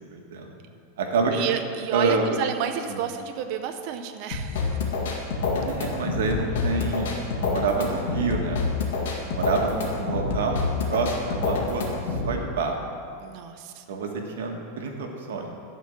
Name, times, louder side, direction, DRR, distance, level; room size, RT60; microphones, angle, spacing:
voice 1, 0.1-0.6 1.0-1.3 1.9-2.2 2.9-3.0 5.6-8.6 9.2-10.6 10.9-11.8 12.2-12.8 13.9-14.1 14.3-15.5, right 4 dB, 80° right, 2 dB, 1.6 m, -27 dB
voice 2, 1.3-4.8 13.2-13.8, right 8 dB, 40° right, 7 dB, 0.7 m, -31 dB
sound 1, 4.3-12.3, left 4 dB, 75° left, 2.0 m, -27 dB
12.0 x 4.6 x 7.7 m, 2.4 s
supercardioid pair, 170°, 0 cm